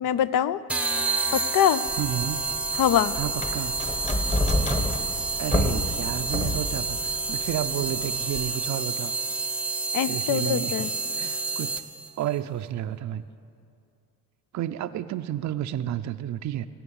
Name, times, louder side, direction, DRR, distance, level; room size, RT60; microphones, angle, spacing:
voice 1, 0.0-0.6 1.3-1.8 2.8-3.1 9.9-10.9, left 10 dB, 60° left, 15 dB, 0.5 m, -23 dB
sound 1, 0.7-12.1, right 3 dB, 5° right, 0.8 m, -29 dB
sound 2, 1.9-8.5, left 1 dB, 20° left, 1.2 m, -29 dB
voice 2, 2.0-2.5 3.1-3.8 5.4-9.1 10.1-10.9 11.1-11.8 12.2-13.3 14.5-16.7, right 11 dB, 50° right, 10 dB, 0.5 m, -31 dB
16.5 x 7.2 x 7.1 m, 2.4 s
supercardioid pair, 75°, 38 cm